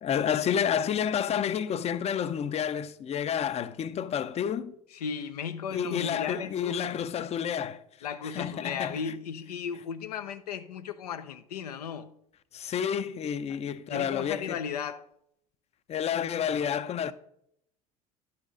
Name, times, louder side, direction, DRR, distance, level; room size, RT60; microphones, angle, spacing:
voice 1, 0.0-4.7 5.7-7.8 8.2-9.0 12.5-14.6 15.9-17.1, left 8 dB, 35° left, 0.5 m, -30 dB
voice 2, 4.9-7.0 8.0-12.1 13.9-15.1, left 7 dB, 90° left, 0.5 m, -36 dB
11.0 x 4.2 x 4.9 m
hypercardioid pair, 75°, 19 cm